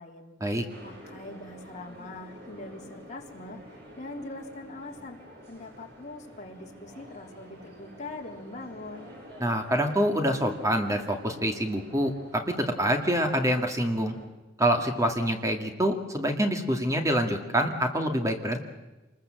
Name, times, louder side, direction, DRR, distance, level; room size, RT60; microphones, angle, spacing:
voice 1, 0.0-0.3 0.8-3.6 4.0-5.2 5.5-9.1, left 2 dB, 40° left, 0 dB, 3.5 m, -42 dB
sound 1, 0.7-14.3, left 1 dB, 60° right, 7.6 m, -48 dB
voice 2, 9.4-14.1 14.6-18.6, equal, 15° right, 4 dB, 2.1 m, -26 dB
28.0 x 21.0 x 7.7 m, 1.1 s
head